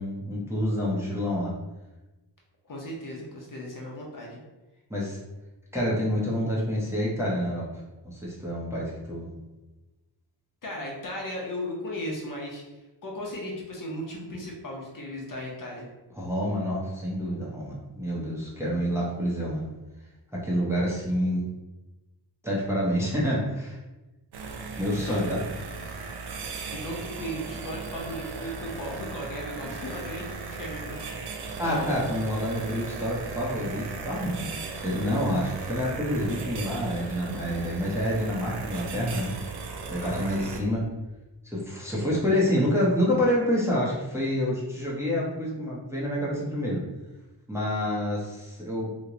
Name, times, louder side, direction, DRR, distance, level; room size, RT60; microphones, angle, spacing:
voice 1, 0.0-1.5 4.9-5.2 5.7-9.3 16.1-19.7 20.3-21.5 22.4-23.8 24.8-25.4 31.6-39.3 39.9-40.8 41.4-46.8 47.5-48.9, equal, 5° right, -6 dB, 0.8 m, -28 dB
voice 2, 2.7-4.4 10.6-12.6 13.0-15.9 25.1-25.4 26.7-31.9 40.0-40.5, left 1 dB, 45° left, -2 dB, 0.7 m, -36 dB
sound 1, 24.3-40.6, right 4 dB, 65° right, 0.5 m, -37 dB
3.0 x 2.1 x 3.7 m, 1.1 s
wide cardioid pair, 125°, 43 cm